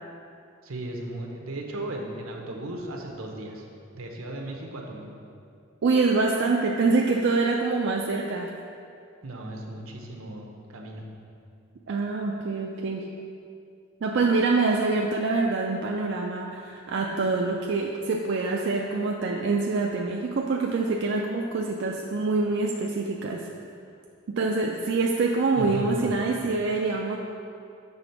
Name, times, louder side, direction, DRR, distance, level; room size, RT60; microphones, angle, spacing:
voice 1, 0.6-3.6 3.9-5.1 9.2-11.1 25.6-26.1, right 1 dB, 80° right, 1 dB, 0.9 m, -36 dB
voice 2, 5.8-8.5 11.9-13.1 14.0-23.5 24.3-27.2, right 3 dB, 55° right, 0 dB, 0.4 m, -25 dB
7.0 x 3.5 x 5.7 m, 2.5 s
head